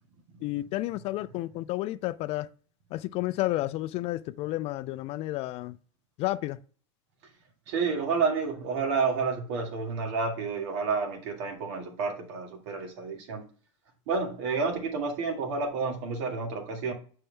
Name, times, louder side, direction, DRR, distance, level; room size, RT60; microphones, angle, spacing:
voice 1, 0.4-2.5 2.9-5.8 6.2-6.6, left 17 dB, 40° left, 0.4 m, -31 dB
voice 2, 7.7-13.4 14.1-16.9, right 4 dB, 60° right, 1.9 m, -30 dB
7.1 x 4.4 x 3.4 m
supercardioid pair, 130°, 17 cm